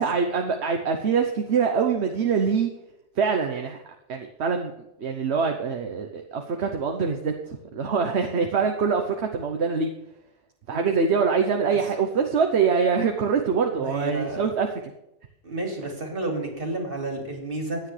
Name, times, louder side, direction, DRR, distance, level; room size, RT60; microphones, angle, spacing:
voice 1, 0.0-2.7 3.2-3.8 4.1-4.7 5.0-9.9 10.7-14.9 15.8-15.9, right 5 dB, 75° right, 4 dB, 1.2 m, -24 dB
voice 2, 13.8-14.4 15.4-17.8, right 2 dB, 55° right, 2 dB, 2.7 m, -30 dB
15.0 x 9.7 x 3.3 m, 0.89 s
omnidirectional pair, 1.2 m